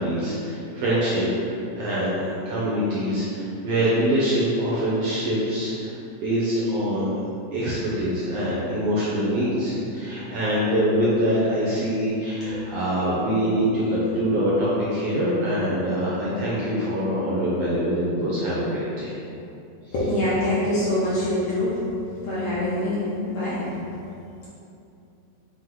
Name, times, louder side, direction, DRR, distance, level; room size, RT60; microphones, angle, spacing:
voice 1, 0.0-5.9 6.2-7.2 7.5-19.1, equal, 75° right, -8 dB, 1.3 m, -24 dB
voice 2, 19.9-21.8 22.2-23.6, left 1 dB, 75° left, -9 dB, 1.3 m, -25 dB
6.1 x 2.1 x 3.7 m, 2.7 s
omnidirectional pair, 3.3 m